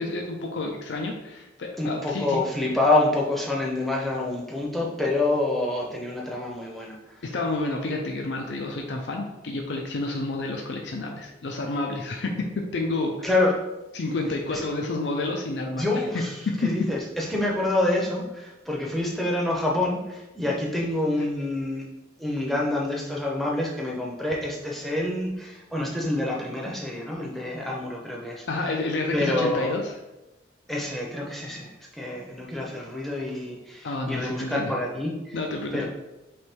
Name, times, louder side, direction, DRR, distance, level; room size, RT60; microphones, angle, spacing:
voice 1, 0.0-2.4 7.2-13.3 13.9-15.9 16.5-16.7 28.5-29.9 33.8-34.7 35.3-35.8, left 2 dB, 65° left, 1 dB, 0.5 m, -29 dB
voice 2, 1.8-7.2 13.2-13.5 14.5-14.6 15.8-16.3 16.6-21.8 22.2-28.5 29.1-29.7 30.7-35.4 35.7-35.8, left 2 dB, ahead, -3 dB, 0.6 m, -27 dB
3.3 x 3.1 x 4.4 m, 1.0 s
head